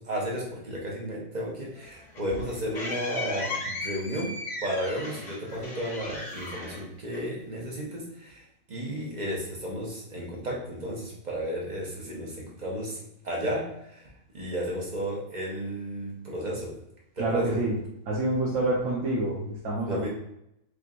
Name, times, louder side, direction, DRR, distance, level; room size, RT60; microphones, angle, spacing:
voice 1, 0.0-4.3 4.6-13.0 13.2-14.0 14.3-16.7 17.2-17.6 19.9-20.1, equal, 35° right, -3 dB, 1.1 m, -33 dB
sound 1, 1.8-7.6, left 2 dB, 40° left, 0.8 m, -37 dB
voice 2, 17.2-17.8 18.1-20.1, right 2 dB, 90° right, -6 dB, 1.3 m, -27 dB
4.9 x 3.0 x 2.5 m, 0.80 s
omnidirectional pair, 1.3 m